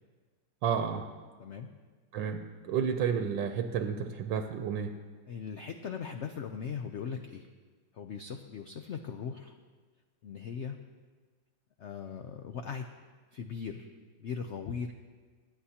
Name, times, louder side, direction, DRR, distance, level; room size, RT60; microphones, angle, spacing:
voice 1, 0.6-1.1 2.1-5.0, right 7 dB, 85° right, 6 dB, 1.4 m, -31 dB
voice 2, 5.3-7.5 7.9-9.6 10.2-10.8 11.8-12.9 13.3-14.9, left 6 dB, 85° left, 6 dB, 0.6 m, -39 dB
25.5 x 9.4 x 2.8 m, 1.5 s
omnidirectional pair, 1.9 m